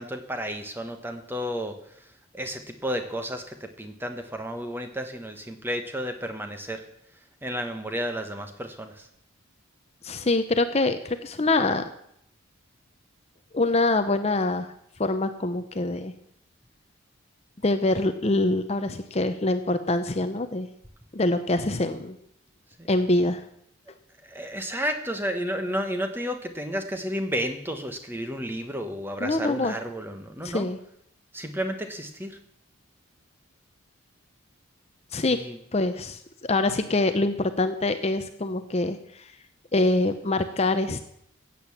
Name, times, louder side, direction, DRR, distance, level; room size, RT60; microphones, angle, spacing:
voice 1, 0.0-1.8 2.3-6.8 7.4-9.1 24.2-30.7 31.3-32.4 35.3-35.6, equal, 10° right, 6 dB, 1.2 m, -32 dB
voice 2, 10.0-11.8 13.5-14.7 15.0-16.1 17.6-20.7 21.1-22.2 22.9-23.4 29.2-29.8 30.4-30.8 35.1-35.4 35.7-39.3 39.7-41.0, left 2 dB, 30° left, 9 dB, 0.7 m, -25 dB
15.0 x 8.6 x 7.2 m, 0.73 s
head